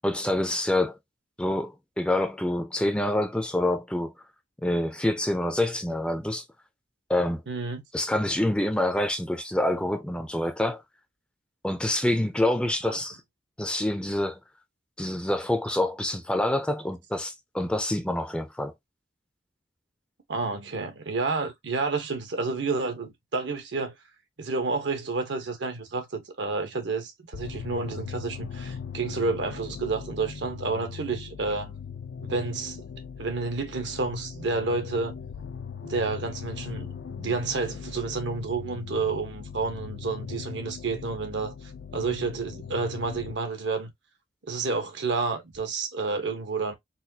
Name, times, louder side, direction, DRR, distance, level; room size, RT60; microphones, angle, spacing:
voice 1, 0.0-1.0 1.4-4.1 4.6-6.4 7.1-7.4 7.9-10.8 11.6-13.2 13.6-14.4 15.0-18.7, left 1 dB, 5° left, 0.4 m, -26 dB
voice 2, 7.5-7.8 12.8-13.0 20.3-23.9 24.4-31.7 32.2-32.8 33.2-35.2 35.8-36.9 37.2-43.9 44.5-46.7, right 4 dB, 75° right, 0.9 m, -30 dB
sound 1, 27.3-43.3, left 6 dB, 75° left, 0.4 m, -39 dB
4.1 x 2.3 x 2.6 m
head